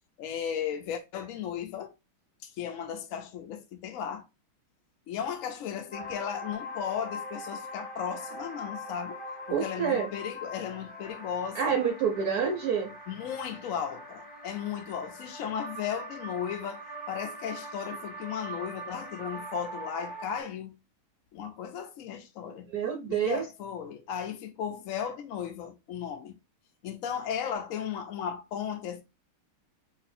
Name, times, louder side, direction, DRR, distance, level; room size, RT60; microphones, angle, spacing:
voice 1, 0.2-1.9 2.4-4.2 5.1-9.2 9.5-11.8 13.1-20.7 21.3-22.7 23.1-26.4 26.8-29.0, left 8 dB, 85° left, 0.7 m, -35 dB
sound 1, 5.9-20.4, equal, 15° left, 0.3 m, -42 dB
voice 2, 9.5-10.1 11.5-12.9 22.7-23.4, right 7 dB, 70° right, 0.9 m, -28 dB
3.0 x 2.6 x 4.1 m
omnidirectional pair, 2.2 m